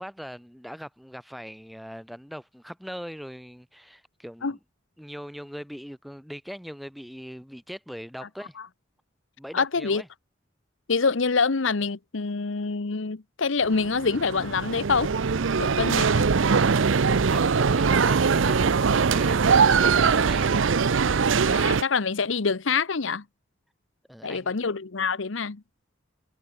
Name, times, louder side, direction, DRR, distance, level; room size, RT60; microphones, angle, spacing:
voice 1, 0.0-4.6 5.0-8.6 9.4-10.1 16.9-20.9 24.1-24.6, equal, ahead, 4.7 m, -41 dB
voice 2, 9.5-10.0 10.9-15.1 15.6-16.3 21.4-23.2 24.2-25.6, left 4 dB, 80° left, 0.9 m, -26 dB
sound 1, 13.6-21.8, right 5 dB, 80° right, 0.6 m, -22 dB
head